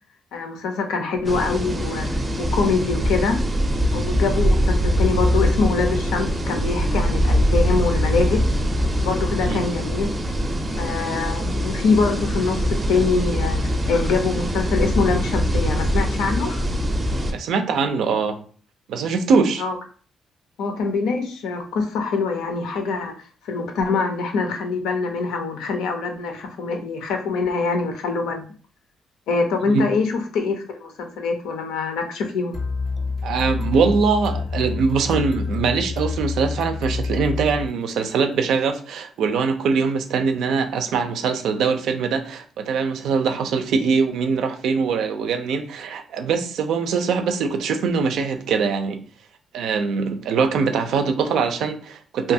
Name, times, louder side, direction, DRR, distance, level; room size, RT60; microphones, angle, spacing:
voice 1, 0.3-3.4 3.9-8.4 9.0-10.1 10.7-16.6 19.6-19.7 20.6-28.4 29.3-32.5, left 4 dB, 90° left, 4 dB, 0.5 m, -24 dB
sound 1, 1.2-17.3, equal, 25° right, 0.5 m, -22 dB
voice 2, 17.3-18.4 18.9-19.6 29.7-29.9 33.2-49.0 49.5-52.3, right 5 dB, 80° right, 7 dB, 0.4 m, -22 dB
sound 2, 32.5-38.2, left 4 dB, 30° left, 0.5 m, -28 dB
2.7 x 2.3 x 2.6 m, 0.41 s
cardioid pair, 90°, 0 cm